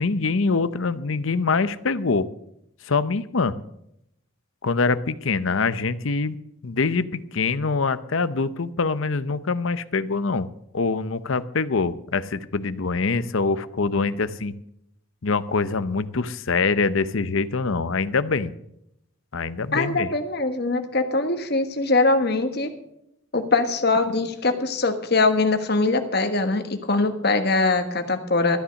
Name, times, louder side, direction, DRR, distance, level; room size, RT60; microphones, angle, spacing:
voice 1, 0.0-2.3 2.8-3.6 4.6-6.4 6.6-10.5 10.7-14.5 15.2-18.5 19.3-20.1, left 4 dB, 70° left, 14 dB, 0.7 m, -24 dB
voice 2, 19.7-22.7 23.3-28.6, left 3 dB, 50° left, 7 dB, 1.4 m, -22 dB
13.5 x 10.0 x 6.4 m, 0.78 s
head